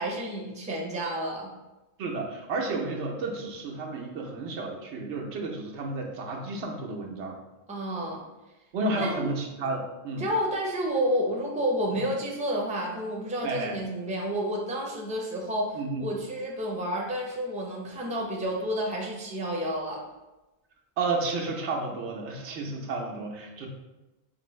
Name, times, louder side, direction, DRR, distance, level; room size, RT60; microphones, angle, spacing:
voice 1, 0.0-1.5 7.7-8.2 9.0-9.3 10.1-20.0, equal, 10° right, -1 dB, 0.5 m, -30 dB
voice 2, 2.0-7.4 8.7-10.3 13.4-13.8 15.8-16.1 21.0-23.7, right 3 dB, 90° right, 1 dB, 1.0 m, -32 dB
5.2 x 2.6 x 3.1 m, 1.1 s
omnidirectional pair, 1.1 m